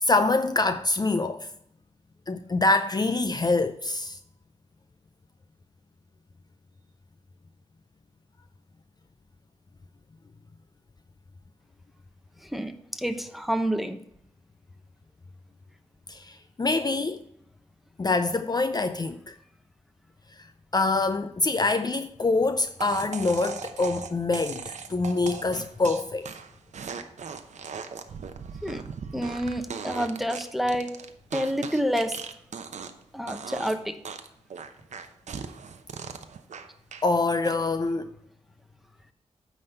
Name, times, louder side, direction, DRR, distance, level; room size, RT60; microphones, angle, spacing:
voice 1, 0.0-1.5 2.3-4.2 16.1-17.2 18.0-19.4 20.4-20.5 20.7-26.3 37.0-38.1, left 3 dB, 35° left, 0.5 m, -25 dB
voice 2, 12.5-14.0 28.6-28.9 29.1-30.9 31.3-32.1 33.1-34.0, equal, ahead, 0.9 m, -28 dB
sound 1, 22.8-33.0 33.3-33.8 34.1-37.1 37.4-37.9, right 6 dB, 75° right, 0.8 m, -38 dB
9.2 x 4.0 x 6.6 m
cardioid pair, 60°, 12 cm